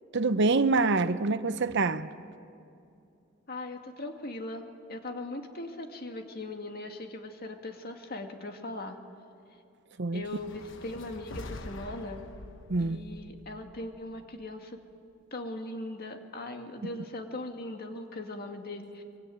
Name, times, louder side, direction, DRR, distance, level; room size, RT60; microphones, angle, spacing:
voice 1, 0.1-2.1 10.0-10.2 12.7-13.0, right 3 dB, 60° right, 0.8 m, -26 dB
voice 2, 3.5-9.0 10.1-12.3 12.8-14.8 15.3-19.0, left 2 dB, 50° left, 2.2 m, -39 dB
sound 1, 10.2-14.5, left 2 dB, 65° left, 1.2 m, -45 dB
24.0 x 23.5 x 9.4 m
head